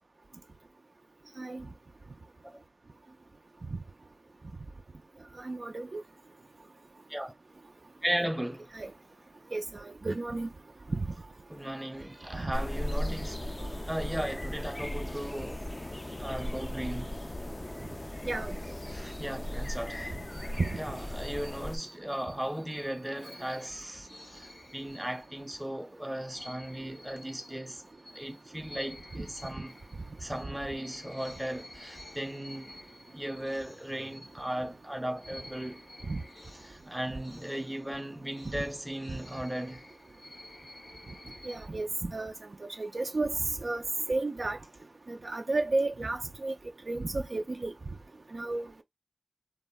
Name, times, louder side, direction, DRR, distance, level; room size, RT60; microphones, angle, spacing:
voice 1, 5.4-6.0 8.7-8.9 9.5-10.5 10.9-11.0 12.4-12.5 18.2-18.6 20.6-20.8 23.4-23.5 29.2-29.3 36.1-36.2 38.5-38.6 41.4-42.3 42.6-43.8 44.1-44.6 45.1-46.6 46.9-47.7 48.3-48.8, right 2 dB, 80° right, 0.3 m, -32 dB
voice 2, 8.0-8.8 11.5-13.5 13.9-15.6 16.2-17.1 18.9-20.2 20.8-27.8 28.1-29.8 30.2-32.7 33.1-35.8 36.7-39.8, right 1 dB, 15° right, 0.6 m, -36 dB
sound 1, 12.5-21.8, left 1 dB, 35° left, 0.3 m, -37 dB
sound 2, 23.1-25.6 26.3-34.8 35.2-41.7, left 1 dB, 80° left, 0.7 m, -52 dB
3.4 x 2.1 x 2.2 m
wide cardioid pair, 50°, 0 cm